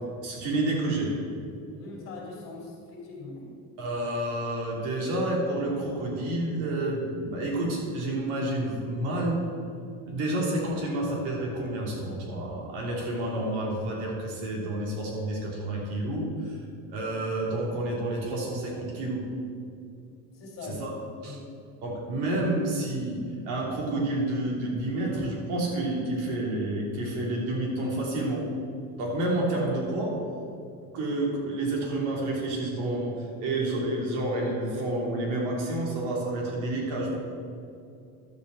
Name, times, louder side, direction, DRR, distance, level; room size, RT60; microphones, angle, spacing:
voice 1, 0.2-1.1 1.7-1.9 3.8-9.4 10.0-16.6 16.9-19.3 20.6-20.9 21.2-21.4 21.8-28.4 29.0-30.2 30.9-37.2, right 1 dB, 70° right, -2 dB, 3.2 m, -29 dB
voice 2, 1.7-3.5 20.3-20.8 21.2-21.8, left 3 dB, 40° left, -1 dB, 3.0 m, -42 dB
12.0 x 5.3 x 7.7 m, 2.4 s
cardioid pair, 175°, 34 cm